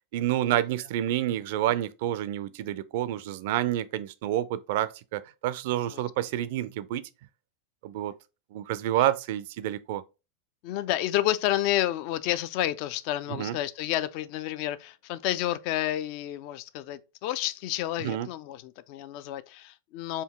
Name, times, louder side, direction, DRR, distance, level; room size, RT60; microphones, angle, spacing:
voice 1, 0.1-7.1 7.8-8.1 8.5-10.0 13.3-13.6 18.0-18.3, right 12 dB, 50° right, 0.4 m, -29 dB
voice 2, 10.6-20.2, left 14 dB, 45° left, 0.4 m, -30 dB
4.4 x 2.8 x 3.5 m
figure-of-eight pair, 90°, 0 cm